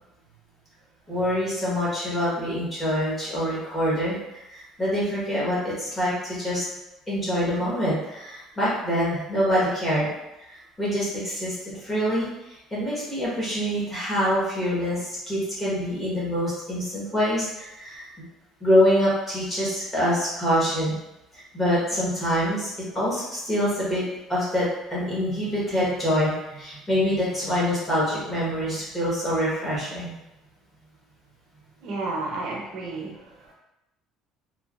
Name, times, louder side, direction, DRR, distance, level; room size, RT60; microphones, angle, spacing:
voice 1, 1.1-4.2 4.5-6.6 7.1-10.1 10.5-12.3 12.7-18.2 18.6-21.0 21.5-24.0 24.3-30.1, equal, 15° left, -8 dB, 1.1 m, -25 dB
voice 2, 31.8-33.5, right 2 dB, 50° right, -2 dB, 0.7 m, -32 dB
3.1 x 2.4 x 2.4 m, 0.91 s
cardioid pair, 160°, 0 cm